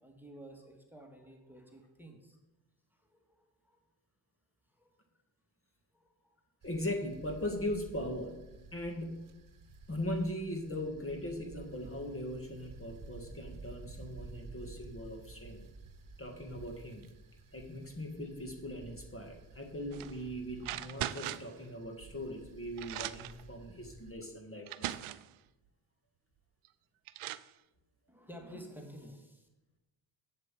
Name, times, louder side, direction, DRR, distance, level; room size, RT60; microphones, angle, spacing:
voice 1, 0.0-2.4 3.0-3.8 4.8-5.0 5.9-6.4 28.1-29.5, equal, 5° right, 2 dB, 1.8 m, -52 dB
voice 2, 6.6-8.4 8.7-9.3 9.9-15.6 16.2-17.0 17.5-25.0, left 1 dB, 25° left, 3 dB, 1.7 m, -39 dB
sound 1, 6.6-24.1, right 3 dB, 40° right, 1.3 m, -52 dB
sound 2, 19.9-20.2 20.6-21.6 22.4-22.5 22.8-23.4 24.2-24.3 24.7-25.3 26.6-26.7 27.1-27.5, right 14 dB, 85° right, 0.6 m, -39 dB
8.2 x 7.5 x 7.4 m, 1.0 s
cardioid pair, 95°, 48 cm